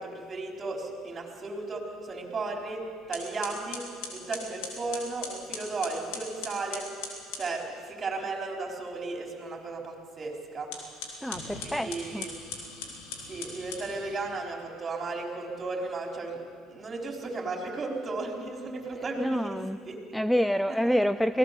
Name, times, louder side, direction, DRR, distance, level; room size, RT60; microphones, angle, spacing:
voice 1, 0.0-2.8 3.1-6.8 7.3-10.7 11.6-12.3 13.3-16.4 16.7-19.6 19.9-20.0 20.9-21.0, right 3 dB, 35° right, 1 dB, 4.4 m, -35 dB
sound 1, 2.6-2.7 3.1-7.5 10.6-14.3, left 5 dB, 85° left, 3.5 m, -40 dB
voice 2, 11.2-12.3 19.2-19.8 20.1-21.4, equal, ahead, 13 dB, 0.5 m, -27 dB
23.0 x 17.5 x 7.0 m, 2.1 s
supercardioid pair, 85°, 0 cm